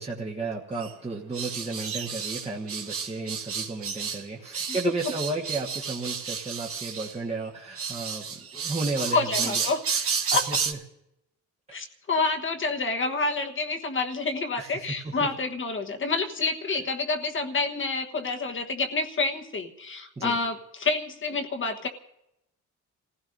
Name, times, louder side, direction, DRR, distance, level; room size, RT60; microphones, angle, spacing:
voice 1, 0.0-10.8 14.6-15.3 20.2-20.4, right 3 dB, 20° right, -1 dB, 1.4 m, -34 dB
sound 1, 0.8-0.9 1.3-4.2 4.5-7.1 7.8-10.7, right 6 dB, 50° right, 1.1 m, -31 dB
voice 2, 9.1-9.8 10.3-10.5 11.7-21.9, left 3 dB, 40° left, 4 dB, 1.3 m, -28 dB
27.5 x 15.5 x 2.6 m, 0.84 s
cardioid pair, 90°, 30 cm